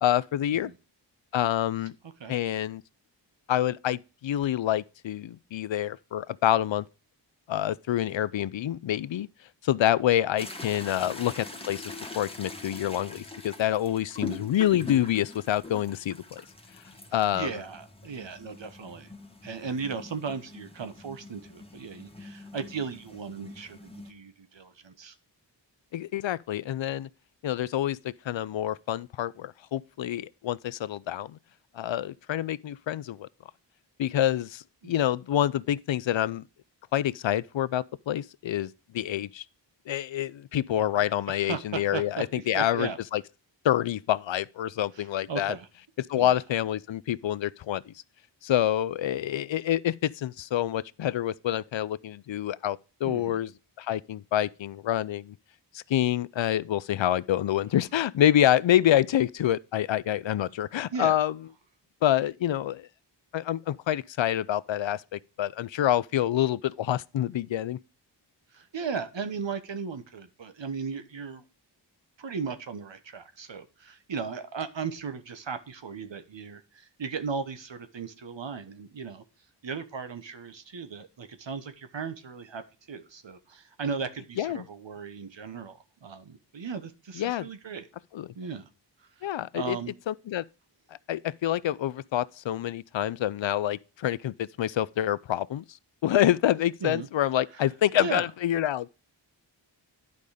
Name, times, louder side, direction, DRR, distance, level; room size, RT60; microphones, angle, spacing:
voice 1, 0.0-0.7 1.3-1.9 2.3-2.8 3.5-6.8 7.5-9.3 9.6-16.4 17.1-17.5 25.9-27.1 27.4-31.4 31.7-33.3 34.0-36.4 36.9-39.4 39.9-43.2 43.6-45.5 46.0-47.9 48.4-53.5 53.8-55.4 55.7-61.3 62.0-62.9 63.3-67.8 84.4-84.6 87.2-87.5 88.1-88.3 89.2-89.8 90.1-90.4 91.1-95.6 96.0-98.9, left 12 dB, 80° left, 0.6 m, -27 dB
sound 1, 10.4-24.1, left 2 dB, 10° left, 1.5 m, -43 dB
voice 2, 17.1-19.1 19.4-25.1 34.8-35.0 40.8-41.0 41.5-43.0 44.9-45.7 46.1-46.4 53.0-53.4 60.9-61.2 68.5-71.4 72.2-79.2 79.6-82.6 82.9-87.9 88.3-88.7 89.0-89.9 96.8-97.1 98.0-98.3, right 5 dB, 75° right, 1.3 m, -36 dB
11.0 x 5.4 x 5.0 m
wide cardioid pair, 60°, 45 cm